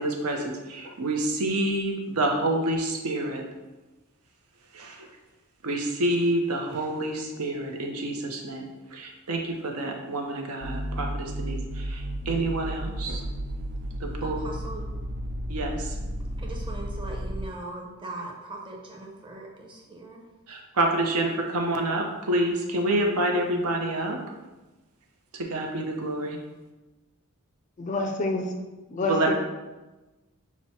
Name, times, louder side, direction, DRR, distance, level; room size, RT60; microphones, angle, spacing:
voice 1, 0.0-3.4 4.7-5.1 5.6-13.2 14.0-14.4 15.5-15.9 20.5-24.2 25.3-26.4 29.0-29.3, right 1 dB, 75° right, 0.7 m, -28 dB
sound 1, 10.6-17.5, equal, 45° right, 0.4 m, -33 dB
voice 2, 14.2-14.9 16.4-20.2, right 2 dB, 20° right, 0.8 m, -40 dB
voice 3, 27.8-28.5 28.9-29.3, left 2 dB, 35° left, 0.4 m, -27 dB
6.0 x 2.1 x 4.2 m
head